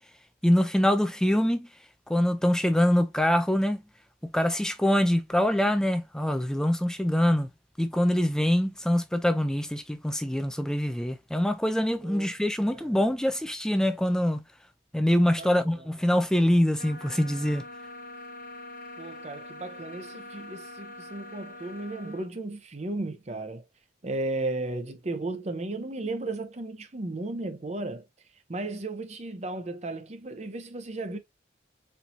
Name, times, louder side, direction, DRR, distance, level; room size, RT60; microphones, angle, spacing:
voice 1, 0.4-1.7 2.1-3.8 4.2-7.5 7.8-14.4 14.9-17.7, left 1 dB, 5° left, 0.4 m, -24 dB
voice 2, 12.0-12.3 12.6-13.0 15.4-15.9 19.0-23.6 24.0-28.1 28.5-31.2, right 2 dB, 35° right, 0.7 m, -35 dB
sound 1, 16.8-22.3, left 1 dB, 50° left, 0.9 m, -44 dB
4.4 x 2.7 x 2.6 m
head